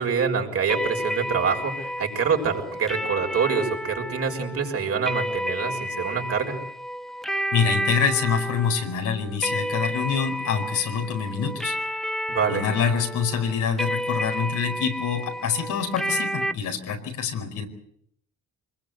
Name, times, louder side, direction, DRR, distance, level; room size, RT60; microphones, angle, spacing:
voice 1, 0.0-6.6 12.3-12.7, right 6 dB, 50° right, 2 dB, 6.4 m, -26 dB
sound 1, 0.7-16.5, equal, ahead, 0.9 m, -31 dB
voice 2, 7.5-11.7 12.5-17.6, left 6 dB, 80° left, 3 dB, 5.0 m, -26 dB
25.0 x 21.0 x 8.2 m, 0.71 s
cardioid pair, 90°, 30 cm